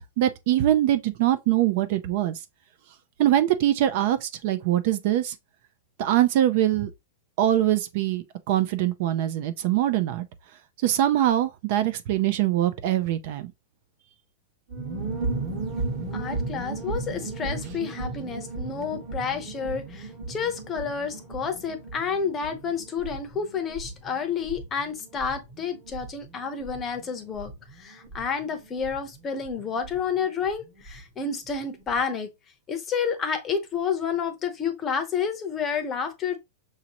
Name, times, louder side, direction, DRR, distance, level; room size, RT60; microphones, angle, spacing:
voice 1, 0.2-2.3 3.2-5.3 6.0-6.9 7.4-10.3 10.8-13.5, right 12 dB, 50° right, 0.6 m, -23 dB
sound 1, 14.7-31.0 31.2-31.3 31.6-32.0, right 3 dB, 30° right, 1.3 m, -36 dB
voice 2, 16.1-27.5 27.8-32.3 32.7-36.4, left 6 dB, 20° left, 0.8 m, -30 dB
6.1 x 2.7 x 2.9 m
supercardioid pair, 160°, 0 cm